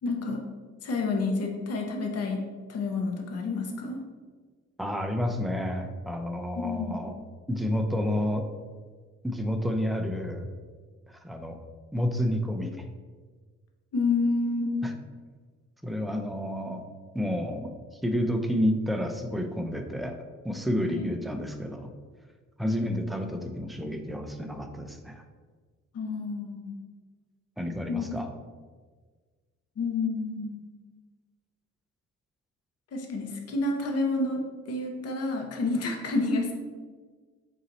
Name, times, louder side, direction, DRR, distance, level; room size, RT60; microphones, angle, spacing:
voice 1, 0.0-0.4 0.8-4.0 6.5-7.0 13.9-14.7 20.9-21.0 25.9-26.7 27.9-28.1 29.8-30.6 32.9-36.5, left 3 dB, 55° left, 2 dB, 0.8 m, -29 dB
voice 2, 4.8-7.1 7.5-8.5 9.2-10.5 11.1-11.6 11.9-12.8 14.8-14.9 15.8-16.8 17.1-17.7 18.0-20.2 20.4-21.9 22.6-25.2 27.6-28.3, equal, ahead, 4 dB, 0.4 m, -30 dB
4.0 x 2.7 x 4.0 m, 1.5 s
cardioid pair, 90°, 30 cm